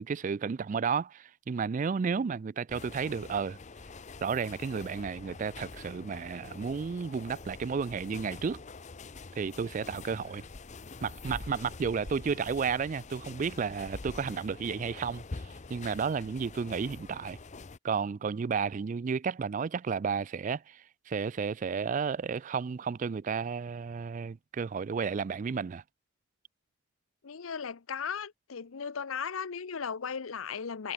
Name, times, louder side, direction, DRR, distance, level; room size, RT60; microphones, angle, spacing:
voice 1, 0.0-3.6 4.2-8.6 9.4-10.4 11.0-15.2 15.7-17.4 17.8-25.8, right 6 dB, 40° right, 0.3 m, -32 dB
sound 1, 2.7-17.8, left 3 dB, 35° left, 0.6 m, -45 dB
voice 2, 27.2-30.9, left 6 dB, 75° left, 0.7 m, -36 dB
head